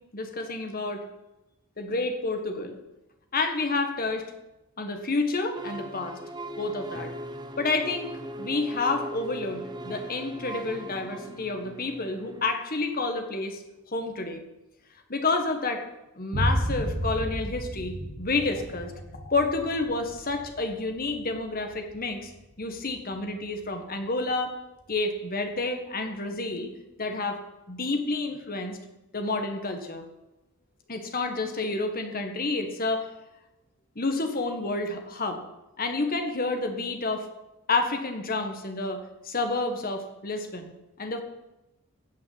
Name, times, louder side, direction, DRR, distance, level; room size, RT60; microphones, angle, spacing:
voice 1, 0.1-1.0 1.8-2.8 3.3-4.3 4.8-6.2 6.6-7.1 7.6-8.1 8.4-13.6 13.9-14.4 15.1-15.8 16.2-22.3 22.6-24.5 24.9-26.7 27.0-27.4 27.7-28.8 29.1-30.0 30.9-33.1 33.9-35.4 35.8-37.3 37.7-40.7 41.0-41.2, left 3 dB, 40° left, 5 dB, 1.6 m, -29 dB
sound 1, 5.5-12.5, right 1 dB, 20° right, 0.8 m, -39 dB
sound 2, 16.3-23.7, equal, 75° right, 1.5 m, -33 dB
16.0 x 5.7 x 7.9 m, 0.98 s
head